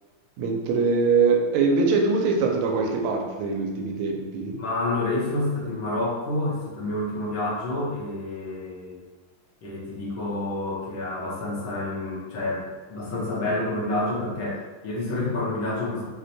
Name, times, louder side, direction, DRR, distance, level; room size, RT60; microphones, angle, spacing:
voice 1, 0.4-4.6, right 4 dB, 90° right, 2 dB, 1.5 m, -23 dB
voice 2, 4.6-9.0 9.6-16.0, left 2 dB, 70° left, -6 dB, 1.6 m, -28 dB
4.6 x 2.1 x 2.7 m, 1.3 s
omnidirectional pair, 2.3 m